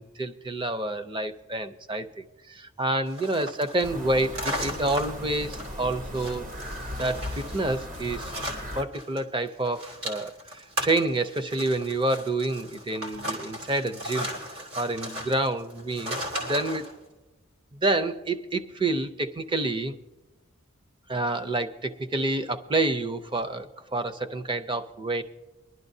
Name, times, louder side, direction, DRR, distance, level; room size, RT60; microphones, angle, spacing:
voice 1, 0.0-6.6 7.0-8.3 8.8-14.3 14.7-16.9 17.7-19.9 21.1-25.2, right 2 dB, 25° right, 9 dB, 0.5 m, -28 dB
sound 1, 3.1-9.2 9.5-16.9, equal, 70° right, 2.9 m, -36 dB
sound 2, 3.8-8.8, left 1 dB, 40° right, 0.9 m, -37 dB
22.5 x 11.5 x 2.7 m, 1.1 s
head